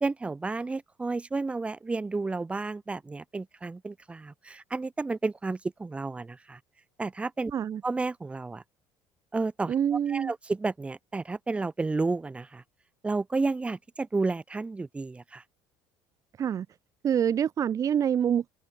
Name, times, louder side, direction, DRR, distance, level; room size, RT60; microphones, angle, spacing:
voice 1, 0.0-6.6 7.0-7.5 7.8-8.6 9.3-9.7 10.1-12.6 13.0-15.4, right 3 dB, 10° right, 0.5 m, -31 dB
voice 2, 7.5-7.8 9.7-10.3 16.4-16.7 17.0-18.5, right 8 dB, 35° right, 0.9 m, -26 dB
cardioid pair, 125°, 9 cm